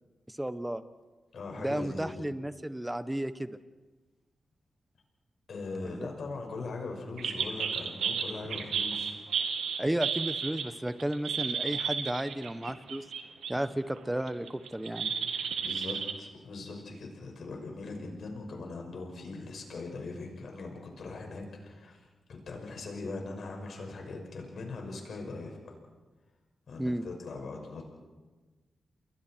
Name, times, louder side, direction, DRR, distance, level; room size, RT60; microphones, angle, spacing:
voice 1, 0.3-0.8 1.6-3.6 5.8-6.1 9.8-13.0 13.5-15.1 26.8-27.0, right 1 dB, 10° right, 12 dB, 1.3 m, -33 dB
voice 2, 1.3-2.3 5.5-9.2 15.0-22.1 22.5-25.6 26.7-27.9, left 3 dB, 70° left, 2 dB, 5.9 m, -40 dB
sound 1, 7.2-13.6 14.0-16.1, right 6 dB, 90° right, 1.7 m, -32 dB
29.5 x 22.0 x 4.6 m, 1.3 s
cardioid pair, 65°, 0 cm